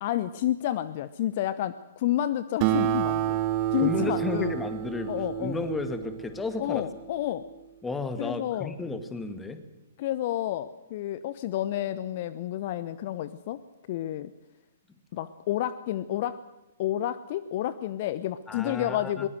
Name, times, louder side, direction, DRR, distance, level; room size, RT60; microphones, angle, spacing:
voice 1, 0.0-3.4 3.7-4.6 5.1-5.6 6.6-7.4 8.2-8.7 10.0-13.6 13.9-14.3 15.1-16.4 16.8-19.3, left 12 dB, 45° left, 15 dB, 0.8 m, -30 dB
Acoustic guitar, 2.6-7.5, right 12 dB, 35° right, 1.2 m, -29 dB
voice 2, 3.8-5.1 5.4-6.9 7.8-9.6 18.5-19.3, left 3 dB, 10° left, 9 dB, 2.1 m, -33 dB
22.0 x 20.0 x 7.9 m, 0.95 s
figure-of-eight pair, 115°, 0 cm